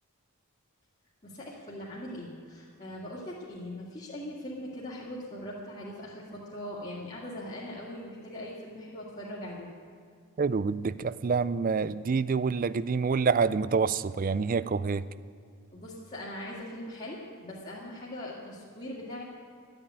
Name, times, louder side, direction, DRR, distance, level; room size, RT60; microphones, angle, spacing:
voice 1, 1.2-9.7 15.7-19.2, left 1 dB, 30° left, -7 dB, 2.2 m, -41 dB
voice 2, 10.4-15.0, right 5 dB, 40° right, 17 dB, 0.4 m, -27 dB
12.5 x 9.0 x 9.7 m, 2.3 s
head